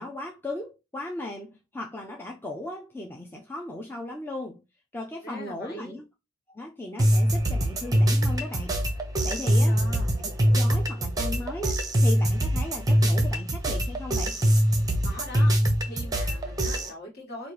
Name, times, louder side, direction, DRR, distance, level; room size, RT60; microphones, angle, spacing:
voice 1, 0.0-4.6 4.9-6.0 6.5-8.8 9.2-9.8 10.2-14.4, left 1 dB, 10° left, 0.4 m, -37 dB
voice 2, 5.2-6.0 9.4-10.1 15.0-15.5 15.8-17.5, left 1 dB, 50° left, 1.6 m, -41 dB
sound 1, 7.0-16.9, equal, 15° right, 0.7 m, -24 dB
5.1 x 2.5 x 3.1 m
head